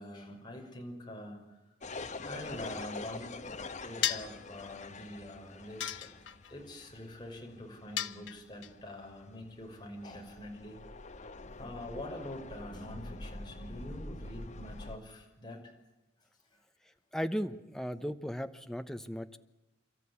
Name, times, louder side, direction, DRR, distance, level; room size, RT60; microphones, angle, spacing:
voice 1, 0.0-1.4 2.2-3.4 3.7-6.1 6.5-10.8 11.6-15.8 16.5-16.6, left 1 dB, 25° left, 1 dB, 5.8 m, -45 dB
sound 1, 1.8-15.0, left 3 dB, 40° left, 1.2 m, -46 dB
sound 2, 4.0-4.4 5.8-6.5 8.0-8.7, left 11 dB, 85° left, 1.0 m, -34 dB
voice 2, 17.1-19.4, equal, 5° left, 8 dB, 1.0 m, -36 dB
30.0 x 14.0 x 9.7 m, 1.0 s
head